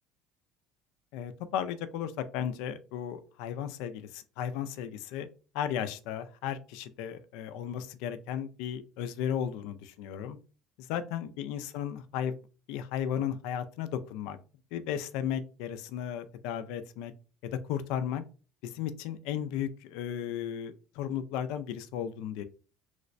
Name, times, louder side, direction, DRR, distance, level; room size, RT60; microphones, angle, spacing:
voice 1, 1.1-5.3 5.5-10.4 10.8-12.4 12.7-14.4 14.7-17.1 17.4-18.2 18.6-22.4, left 9 dB, 80° left, 0.4 m, -35 dB
3.2 x 3.1 x 2.5 m
cardioid pair, 120°, 0 cm